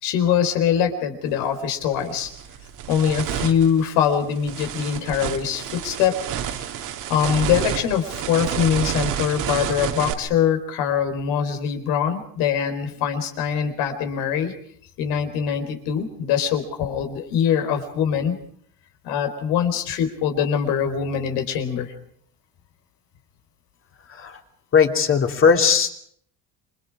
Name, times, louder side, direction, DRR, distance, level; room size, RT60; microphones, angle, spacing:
voice 1, 0.0-2.3 2.9-6.2 6.5-6.7 7.1-14.5 15.0-18.4 19.0-21.9, left 8 dB, 90° left, 7 dB, 4.5 m, -23 dB
sound 1, 1.3-1.4 1.9-10.1, right 9 dB, 60° right, 2.2 m, -30 dB
voice 2, 24.1-24.4 24.7-25.9, left 6 dB, 35° left, 5 dB, 2.8 m, -18 dB
28.0 x 24.0 x 5.0 m, 0.63 s
cardioid pair, 135°, 35 cm